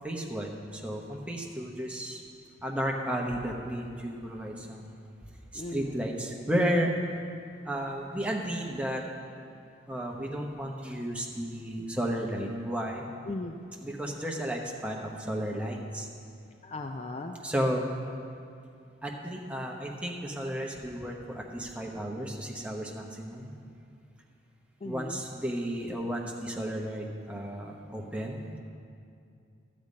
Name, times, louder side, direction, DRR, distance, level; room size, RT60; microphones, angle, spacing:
voice 1, 0.0-2.2 2.6-5.0 5.5-7.0 7.6-9.1 9.9-13.1 13.8-16.1 17.4-17.9 19.0-23.5 24.8-28.6, equal, 5° right, -1 dB, 0.9 m, -33 dB
voice 2, 5.6-6.0 13.3-13.6 16.6-17.4 24.8-25.2, left 2 dB, 35° left, 5 dB, 0.4 m, -37 dB
11.5 x 5.2 x 8.4 m, 2.4 s
head